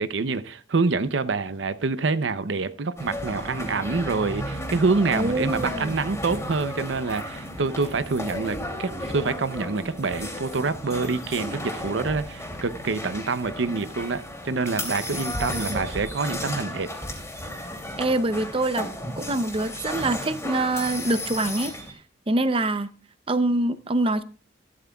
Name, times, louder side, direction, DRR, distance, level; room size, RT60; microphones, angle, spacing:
voice 1, 0.0-16.9, right 4 dB, 75° right, 0.7 m, -26 dB
sound 1, 3.0-21.9, left 1 dB, 15° left, 2.8 m, -34 dB
voice 2, 5.1-5.9 18.0-18.9 19.2-21.7 22.3-22.9 23.3-24.2, right 2 dB, 30° right, 0.6 m, -24 dB
15.0 x 12.0 x 2.3 m
head